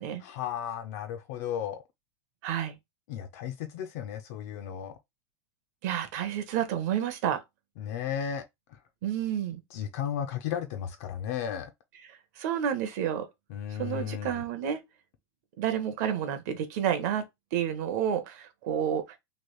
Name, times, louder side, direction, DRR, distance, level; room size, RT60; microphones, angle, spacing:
voice 1, 0.2-1.8 3.1-5.0 7.8-8.8 9.7-11.7 13.5-14.5, left 9 dB, 35° left, 0.3 m, -34 dB
voice 2, 2.4-2.8 5.8-7.4 9.0-9.6 12.4-13.3 13.8-14.8 15.6-19.2, right 9 dB, 40° right, 0.6 m, -30 dB
3.1 x 2.5 x 3.0 m
supercardioid pair, 175°, 14 cm